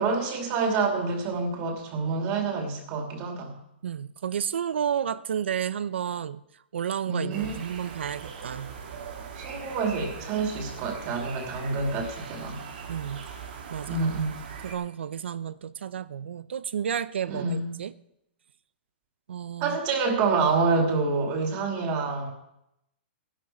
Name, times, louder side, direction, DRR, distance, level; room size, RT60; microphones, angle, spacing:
voice 1, 0.0-3.5 7.1-7.6 9.4-12.6 13.9-14.3 17.3-17.8 19.6-22.3, right 4 dB, 30° right, 2 dB, 2.5 m, -27 dB
voice 2, 3.8-6.4 6.7-8.7 12.9-13.2 13.7-14.0 14.6-17.9 19.3-19.8, right 8 dB, 85° right, 16 dB, 0.7 m, -31 dB
sound 1, 7.3-14.7, right 6 dB, 60° right, 3.5 m, -40 dB
17.5 x 11.5 x 4.4 m, 0.80 s
hypercardioid pair, 165°, 6 cm